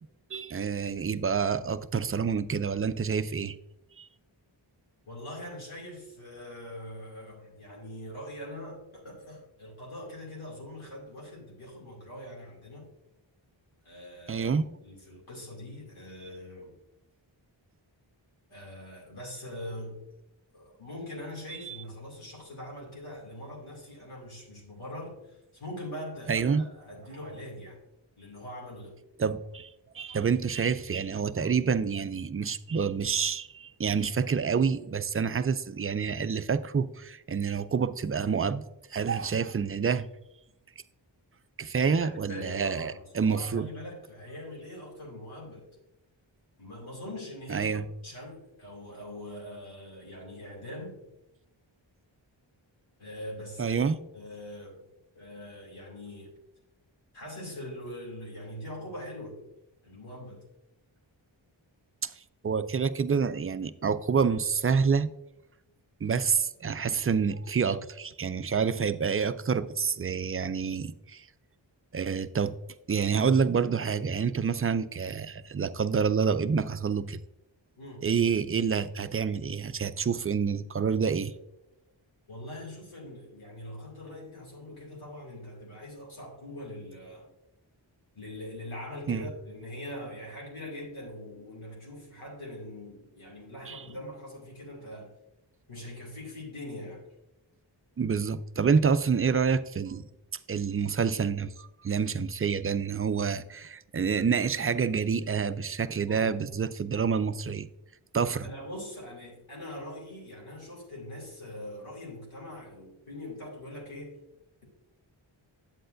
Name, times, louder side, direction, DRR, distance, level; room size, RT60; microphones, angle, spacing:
voice 1, 0.3-3.6 4.0-4.1 14.3-14.7 21.6-21.8 26.3-26.7 29.2-38.6 38.9-40.1 41.6-43.7 47.5-47.8 53.6-54.0 62.0-62.1 62.4-65.1 66.0-71.3 71.9-72.5 72.9-77.2 78.0-81.3 89.1-89.3 93.7-93.8 98.0-100.1 100.5-107.7 108.1-108.5, right 6 dB, 30° right, 0.3 m, -28 dB
voice 2, 5.1-12.9 13.8-14.5 14.8-16.8 18.5-20.1 20.5-27.8 28.2-29.0 42.0-45.7 46.6-51.0 53.0-53.8 54.1-54.9 55.1-56.4 57.1-59.4 59.8-60.5 77.8-78.1 82.3-87.3 88.1-95.1 95.7-97.0 106.1-106.3 108.4-114.2, left 1 dB, 90° left, 2.6 m, -42 dB
8.7 x 7.8 x 2.6 m
cardioid pair, 45°, 47 cm